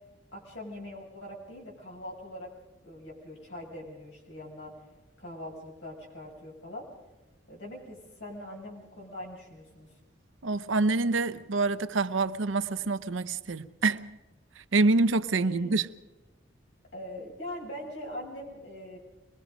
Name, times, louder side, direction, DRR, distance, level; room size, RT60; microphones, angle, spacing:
voice 1, 0.3-2.5 2.8-4.7 5.2-6.9 7.5-9.9 15.4-15.8 16.9-19.0, left 1 dB, 65° left, 6.6 m, -42 dB
voice 2, 10.4-14.1 14.6-15.9, right 3 dB, 90° right, 0.8 m, -26 dB
25.0 x 20.5 x 5.2 m
head